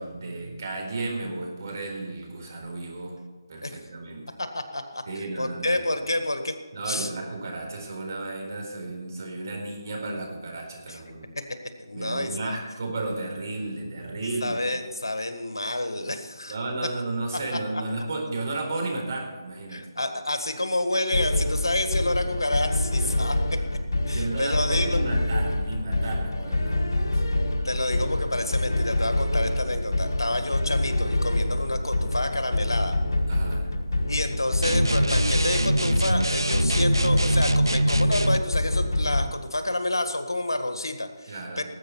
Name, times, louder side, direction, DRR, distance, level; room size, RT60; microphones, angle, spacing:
voice 1, 0.0-3.2 3.5-4.3 5.1-5.8 6.7-11.3 11.9-14.6 16.5-19.9 23.0-23.3 24.1-27.2 33.3-33.7 41.3-41.6, right 2 dB, 50° right, 1 dB, 4.3 m, -33 dB
voice 2, 4.4-6.5 6.8-7.1 10.9-11.0 11.5-12.5 14.4-16.5 17.5-17.6 19.7-23.6 24.0-25.0 27.6-33.0 34.1-41.6, left 1 dB, 80° left, 8 dB, 1.7 m, -29 dB
sound 1, 21.1-39.2, left 1 dB, 60° left, 2.0 m, -26 dB
sound 2, 34.6-38.5, right 1 dB, 90° right, 0.7 m, -24 dB
19.0 x 8.3 x 4.6 m, 1.4 s
figure-of-eight pair, 150°, 2 cm